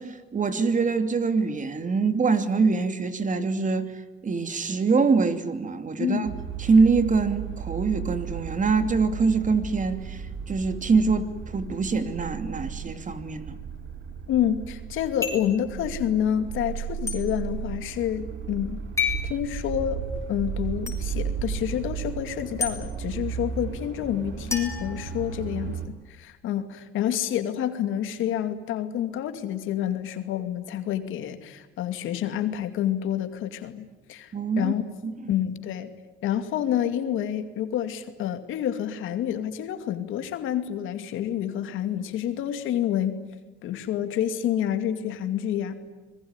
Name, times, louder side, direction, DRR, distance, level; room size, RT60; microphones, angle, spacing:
voice 1, 0.0-3.9 4.2-6.3 6.6-13.6 34.3-34.7 35.0-35.1, right 4 dB, 40° right, 2.7 m, -24 dB
sound 1, 6.2-25.9, right 7 dB, 70° right, 3.9 m, -35 dB
voice 2, 14.3-34.8 35.3-35.9 36.2-43.2 43.6-45.7, left 10 dB, 90° left, 2.5 m, -28 dB
sound 2, 15.2-15.6 17.1-17.2 19.0-19.3 20.9-21.0 22.6-22.8 24.5-25.6, left 5 dB, 15° left, 6.9 m, -30 dB
26.0 x 21.5 x 9.7 m
cardioid pair, 90°, 20 cm